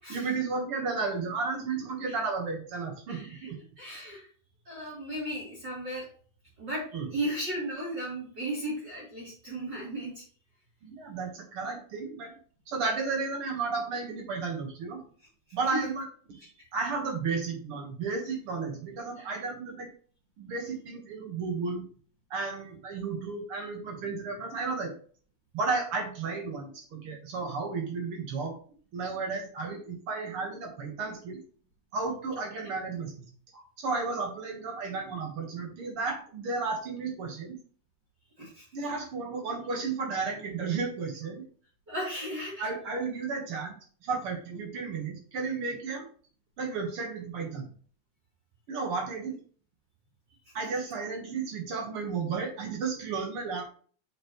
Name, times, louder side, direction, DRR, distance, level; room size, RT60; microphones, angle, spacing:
voice 1, 0.1-3.6 6.9-7.1 10.8-12.3 12.7-15.0 15.5-16.1 16.4-19.9 20.4-21.8 22.3-24.9 25.5-28.5 28.9-31.4 31.9-33.1 33.5-37.6 38.7-41.4 42.6-43.8 44.0-46.1 46.6-47.7 48.7-49.4 50.5-53.6, right 4 dB, 55° right, 2 dB, 1.6 m, -33 dB
voice 2, 3.1-3.5 3.8-4.3 4.7-6.0 6.6-6.8 7.1-10.2 15.7-15.8 19.2-19.3 38.4-38.7 41.9-42.7, right 1 dB, 30° right, -5 dB, 3.8 m, -35 dB
7.8 x 7.1 x 3.1 m, 0.44 s
omnidirectional pair, 4.4 m